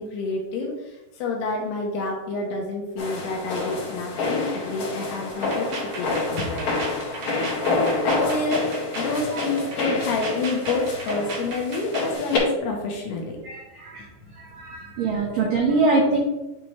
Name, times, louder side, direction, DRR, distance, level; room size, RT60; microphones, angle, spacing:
voice 1, 0.0-5.7 6.0-6.7 8.0-13.4 15.2-15.5, left 3 dB, 75° left, 0 dB, 2.6 m, -29 dB
sound 1, 3.0-12.4, left 3 dB, 50° left, 2.5 m, -27 dB
sound 2, 5.3-12.1, right 3 dB, 60° right, 2.9 m, -36 dB
voice 2, 13.4-14.0 14.4-16.2, right 3 dB, 80° right, -2 dB, 1.9 m, -23 dB
9.8 x 4.0 x 3.2 m, 1.0 s
omnidirectional pair, 5.4 m